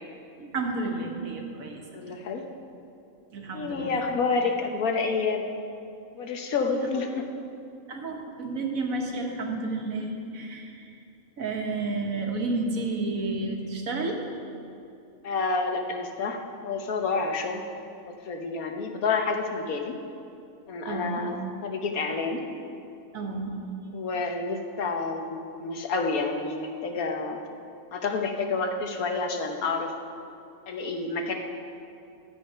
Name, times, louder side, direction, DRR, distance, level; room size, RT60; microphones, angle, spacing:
voice 1, 0.4-1.8 3.3-4.0 6.9-7.0 7.9-11.0 11.4-14.2 20.9-21.2 23.1-23.6, right 3 dB, 75° right, 1 dB, 1.7 m, -31 dB
voice 2, 1.9-2.4 3.5-5.5 6.1-7.3 15.2-17.6 18.2-19.9 20.7-21.4 21.6-22.4 23.9-27.4 27.9-29.9 30.7-31.3, left 4 dB, 90° left, 3 dB, 1.4 m, -29 dB
11.5 x 7.7 x 5.6 m, 2.6 s
omnidirectional pair, 1.5 m